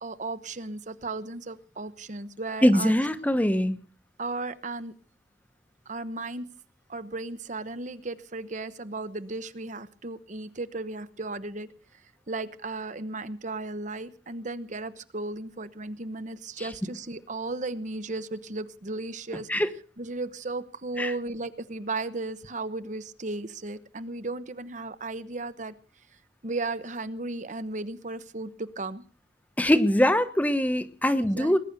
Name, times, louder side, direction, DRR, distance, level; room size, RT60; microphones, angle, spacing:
voice 1, 0.0-3.0 4.2-4.9 5.9-6.5 6.9-11.7 12.3-19.5 20.0-25.7 26.4-29.0 31.2-31.6, right 2 dB, 45° right, 13 dB, 1.0 m, -35 dB
voice 2, 2.6-3.8 19.5-19.7 21.0-21.1 29.6-31.6, equal, 10° left, 11 dB, 1.1 m, -22 dB
20.5 x 10.5 x 6.8 m, 0.41 s
head